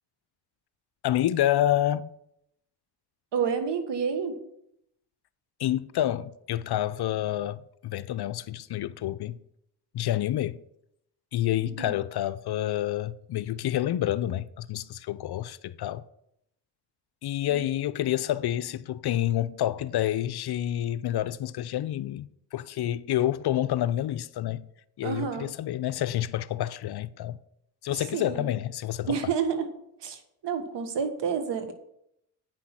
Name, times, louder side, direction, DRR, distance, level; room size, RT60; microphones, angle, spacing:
voice 1, 1.0-2.1 5.6-9.4 9.9-10.6 11.3-16.0 17.2-22.3 22.5-24.7 25.0-27.4 27.8-29.2, left 12 dB, 55° left, 0.6 m, -28 dB
voice 2, 3.3-4.4 11.8-12.0 17.5-17.6 25.0-25.5 27.9-28.5 29.0-29.7 30.0-31.7, right 6 dB, 60° right, 1.6 m, -29 dB
8.9 x 6.0 x 5.9 m
supercardioid pair, 55°, 47 cm